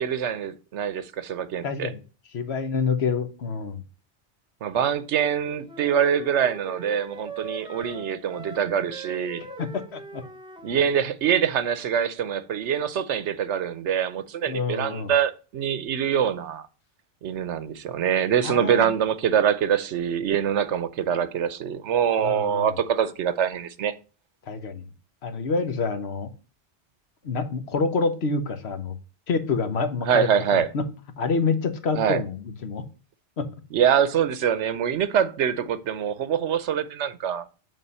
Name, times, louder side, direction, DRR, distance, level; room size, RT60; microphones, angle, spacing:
voice 1, 0.0-1.9 4.6-9.4 10.6-16.7 17.2-23.9 30.0-30.7 31.9-32.2 33.7-37.5, right 8 dB, 85° right, 1.1 m, -24 dB
voice 2, 1.6-2.0 2.3-3.8 9.4-10.2 14.5-15.1 18.4-18.9 22.2-22.7 24.5-24.8 25.2-26.3 27.2-29.0 29.3-30.8 31.2-32.8 33.4-33.5, left 4 dB, 70° left, 1.2 m, -27 dB
sound 1, 5.6-10.8, right 2 dB, 5° right, 0.7 m, -41 dB
7.6 x 3.9 x 5.4 m
omnidirectional pair, 1.2 m